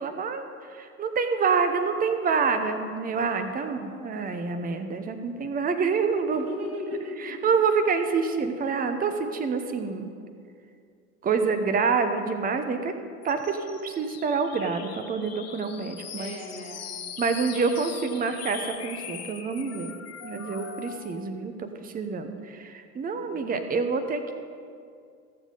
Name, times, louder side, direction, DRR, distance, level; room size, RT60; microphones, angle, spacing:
voice 1, 0.0-6.5 7.2-10.1 11.2-12.9 13.2-16.3 17.2-20.0 20.2-24.3, right 5 dB, 20° right, 7 dB, 0.9 m, -27 dB
voice 2, 3.4-4.2 6.3-7.5 16.1-16.9 19.8-19.9 23.1-23.4, left 1 dB, 85° right, -2 dB, 3.3 m, -38 dB
sound 1, 13.2-21.2, left 7 dB, 35° left, 1.5 m, -41 dB
15.5 x 7.2 x 5.4 m, 2.3 s
hypercardioid pair, 80°, 43 cm